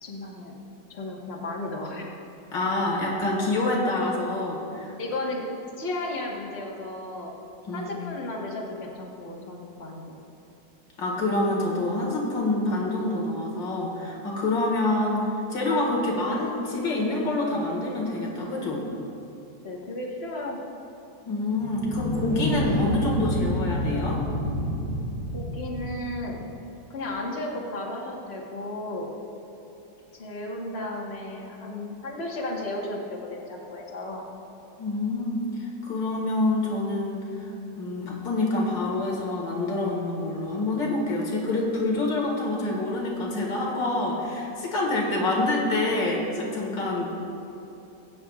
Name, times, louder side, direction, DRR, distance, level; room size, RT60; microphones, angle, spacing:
voice 1, 0.0-0.5 0.9-2.2 5.0-5.4 5.8-7.3 7.7-10.2 19.6-20.6 25.3-26.5 26.9-29.1 30.1-34.2, left 2 dB, 35° left, -2 dB, 1.6 m, -34 dB
voice 2, 2.5-4.9 7.7-7.9 11.0-18.8 21.3-24.2 34.8-37.5 37.8-47.1, left 2 dB, 85° left, -2 dB, 2.5 m, -27 dB
sound 1, 21.6-26.5, equal, 55° left, 2.3 m, -29 dB
19.0 x 9.4 x 2.4 m, 3.0 s
omnidirectional pair, 1.9 m